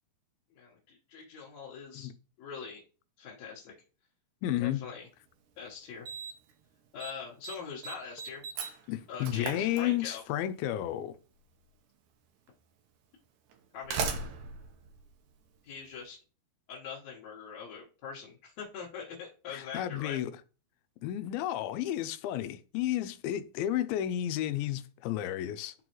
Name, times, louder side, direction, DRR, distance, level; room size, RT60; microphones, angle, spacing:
voice 1, 0.5-2.1 2.4-2.8 3.2-3.7 4.6-5.1 5.6-6.1 6.9-8.4 9.1-10.2 13.7-14.1 15.6-16.2 16.7-20.2, left 6 dB, 60° left, 2.1 m, -43 dB
voice 2, 4.4-4.9 8.9-11.2 19.5-20.3 21.0-25.7, left 12 dB, 85° left, 2.4 m, -32 dB
Slam, 5.2-5.3 6.1-6.5 6.8-7.1 7.4-10.4 11.5-11.6 12.5-12.6 13.5-15.9, right 5 dB, 70° right, 2.0 m, -38 dB
11.0 x 3.9 x 3.0 m
omnidirectional pair, 4.2 m